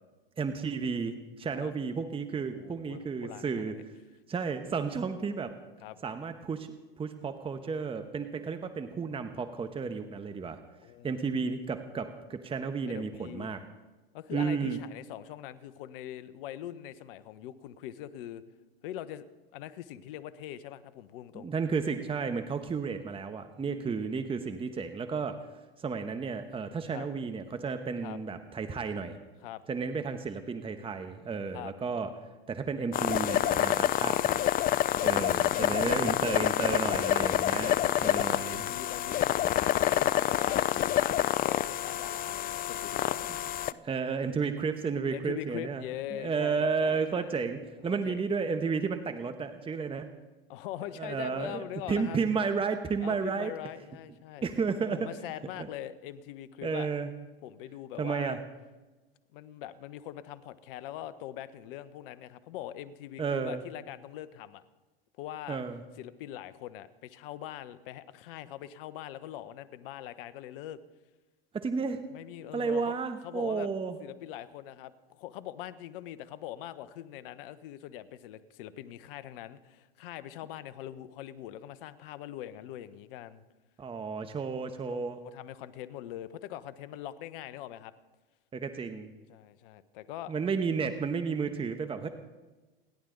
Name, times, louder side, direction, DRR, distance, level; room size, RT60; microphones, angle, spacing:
voice 1, 0.4-3.8 4.3-5.5 6.0-10.6 11.0-13.6 14.3-14.8 21.3-25.4 25.8-29.2 29.7-32.1 32.5-34.4 35.0-38.6 43.8-45.8 46.1-50.1 51.0-53.5 54.4-55.1 55.6-55.7 56.6-57.1 58.0-58.4 63.2-63.6 65.5-65.8 71.5-72.0 72.5-74.0 83.8-85.2 88.5-89.1 90.3-92.1, right 5 dB, 15° right, 8 dB, 1.2 m, -32 dB
voice 2, 2.5-3.8 5.8-6.0 10.8-11.1 11.4-11.5 12.9-13.5 14.1-18.4 18.8-19.3 19.5-21.5 23.6-24.2 26.9-27.1 28.0-28.2 29.4-29.6 31.5-31.7 34.8-36.4 37.5-43.3 45.1-47.4 47.8-48.2 50.5-52.2 53.0-54.4 54.9-56.9 57.4-58.4 59.3-64.6 65.2-65.6 66.0-70.8 72.1-72.9 73.2-73.7 74.0-83.4 84.9-87.9 89.3-90.3, left 12 dB, 60° left, 14 dB, 1.1 m, -42 dB
sound 1, 32.9-43.7, left 12 dB, 30° left, 0.5 m, -27 dB
29.0 x 11.5 x 4.0 m, 1.2 s
hypercardioid pair, 95°, 31 cm